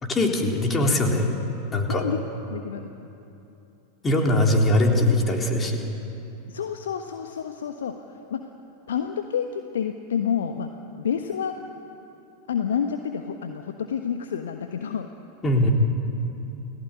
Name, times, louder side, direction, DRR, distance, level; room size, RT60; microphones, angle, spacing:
voice 1, 0.0-1.3 1.7-2.0 4.0-5.8 15.4-15.7, left 1 dB, 20° left, 1 dB, 4.0 m, -21 dB
voice 2, 1.9-2.2 2.5-2.9 6.5-8.5 8.9-10.7 11.0-11.6 12.5-15.1, left 7 dB, 65° left, 6 dB, 1.3 m, -29 dB
29.5 x 18.5 x 9.8 m, 2.9 s
figure-of-eight pair, 90°, 0 cm